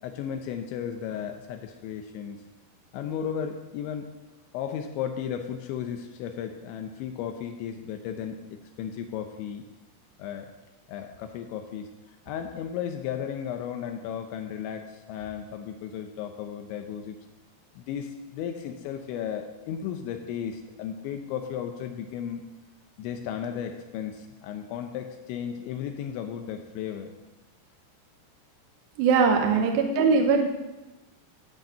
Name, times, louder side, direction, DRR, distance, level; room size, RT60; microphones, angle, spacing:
voice 1, 0.0-2.4 2.9-4.1 4.5-8.4 8.8-9.6 10.2-10.5 10.9-11.9 12.3-17.2 17.8-22.5 23.0-27.1 29.5-29.8, left 8 dB, 85° left, 5 dB, 3.1 m, -34 dB
voice 2, 29.0-30.5, right 5 dB, 80° right, 3 dB, 2.9 m, -21 dB
13.0 x 6.5 x 8.6 m, 1.1 s
omnidirectional pair, 5.3 m